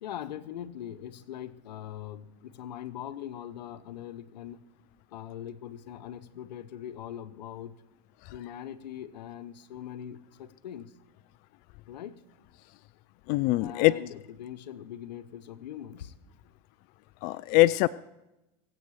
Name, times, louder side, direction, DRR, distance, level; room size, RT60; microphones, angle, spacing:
voice 1, 0.0-4.6 5.1-7.7 8.3-10.9 11.9-12.2 13.6-16.1, left 10 dB, 85° left, 13 dB, 1.0 m, -41 dB
voice 2, 13.3-14.0 17.2-17.9, left 19 dB, 50° left, 15 dB, 0.4 m, -22 dB
22.5 x 8.0 x 4.9 m, 0.93 s
supercardioid pair, 115°, 21 cm